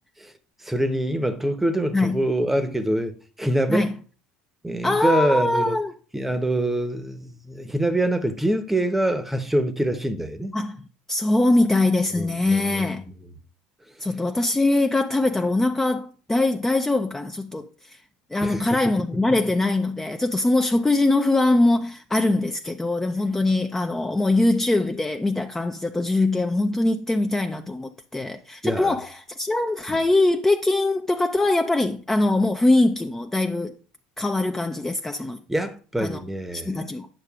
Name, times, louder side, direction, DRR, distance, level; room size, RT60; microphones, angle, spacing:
voice 1, 0.6-3.1 3.4-3.9 4.6-5.8 6.1-10.5 12.2-12.9 18.4-18.8 28.6-29.0 29.9-30.0 35.5-36.7, right 1 dB, 5° right, 0.9 m, -25 dB
voice 2, 4.8-5.9 10.5-10.8 11.1-13.1 14.0-18.0 18.3-33.7 34.2-35.4 36.0-36.2 36.5-37.1, left 2 dB, 10° left, 0.5 m, -22 dB
10.0 x 6.4 x 2.4 m
hypercardioid pair, 75°, 3 cm